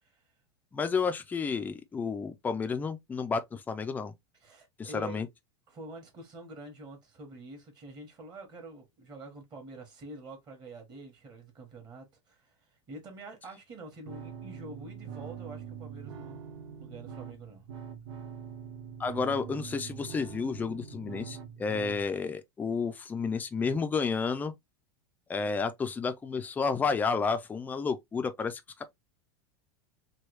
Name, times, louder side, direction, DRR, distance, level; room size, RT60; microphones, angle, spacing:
voice 1, 0.0-0.3 4.4-5.2 5.7-16.5 16.8-17.6, right 2 dB, 30° right, 1.2 m, -47 dB
voice 2, 0.7-4.1 4.8-5.3 19.0-24.5 25.3-28.9, left 5 dB, 10° left, 0.4 m, -31 dB
sound 1, 14.0-22.0, right 7 dB, 90° right, 0.9 m, -43 dB
3.2 x 2.3 x 3.1 m
supercardioid pair, 140°, 15 cm